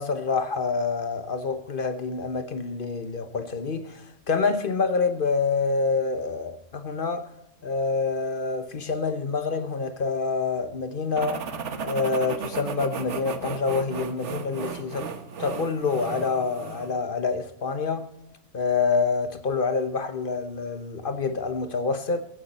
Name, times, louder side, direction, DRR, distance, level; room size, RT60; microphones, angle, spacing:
voice 1, 0.0-7.3 7.6-11.5 11.8-15.1 15.4-18.1 18.5-22.2, left 4 dB, 50° left, 1.2 m, -27 dB
sound 1, 11.2-17.0, right 6 dB, 75° right, 1.4 m, -35 dB
16.0 x 10.5 x 4.2 m
omnidirectional pair, 1.2 m